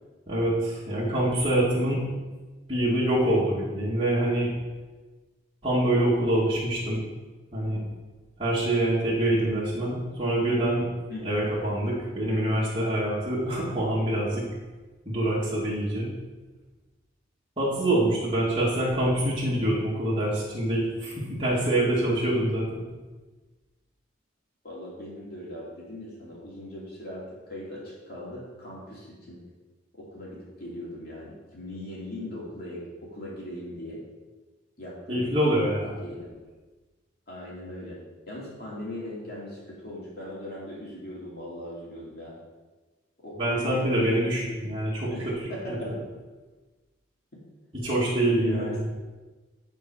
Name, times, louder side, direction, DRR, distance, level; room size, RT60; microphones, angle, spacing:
voice 1, 0.3-2.0 2.7-4.5 5.6-7.0 7.5-7.8 8.4-10.9 11.2-14.4 15.1-16.1 17.6-22.8 35.1-35.9 43.4-45.3 45.9-46.0 47.7-48.8, right 1 dB, 25° right, -8 dB, 2.2 m, -25 dB
voice 2, 11.1-11.4 24.6-29.4 30.0-34.0 34.8-35.3 36.0-36.4 37.3-42.4 43.2-44.2 45.1-46.0 48.2-48.9, left 1 dB, 50° left, -6 dB, 2.7 m, -39 dB
10.5 x 4.6 x 6.2 m, 1.3 s
head